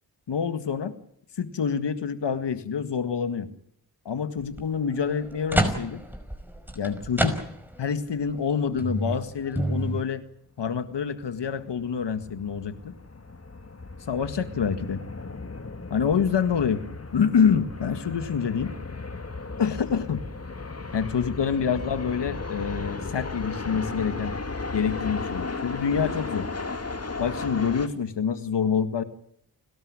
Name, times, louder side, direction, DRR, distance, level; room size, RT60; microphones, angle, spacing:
voice 1, 0.3-0.9 1.4-3.5 4.1-6.0 6.8-7.4 7.8-10.2 10.6-12.9 14.1-15.0 15.9-16.8 17.1-18.7 19.6-20.2 20.9-24.4 24.7-26.5 27.2-29.0, left 6 dB, 85° left, 10 dB, 1.9 m, -26 dB
sound 1, 4.4-4.6 5.1-7.9 8.3-8.4 8.8-10.0, right 1 dB, 5° right, 5.3 m, -28 dB
sound 2, 10.8-27.9, left 3 dB, 35° left, 2.5 m, -36 dB
30.0 x 13.0 x 9.8 m, 0.71 s
cardioid pair, 40°, 41 cm